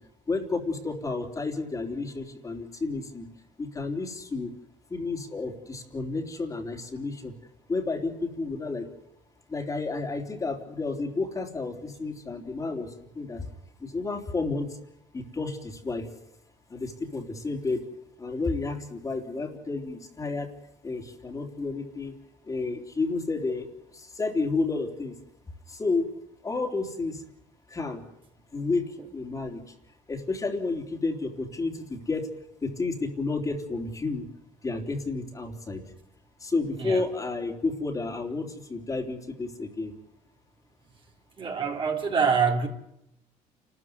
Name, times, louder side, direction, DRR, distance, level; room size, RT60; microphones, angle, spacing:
voice 1, 0.3-3.3 3.6-4.5 4.9-7.3 7.7-8.9 9.5-13.5 13.8-14.7 15.1-16.1 16.7-17.8 18.2-20.5 20.8-22.2 22.4-25.2 25.7-26.1 26.4-27.2 27.7-28.0 28.5-29.7 30.1-32.3 32.6-34.3 34.6-35.8 36.4-39.9, left 3 dB, 25° left, 3.6 m, -31 dB
voice 2, 41.4-42.7, right 5 dB, 40° right, 4.0 m, -25 dB
28.5 x 14.0 x 9.6 m
cardioid pair, 105°, 13 cm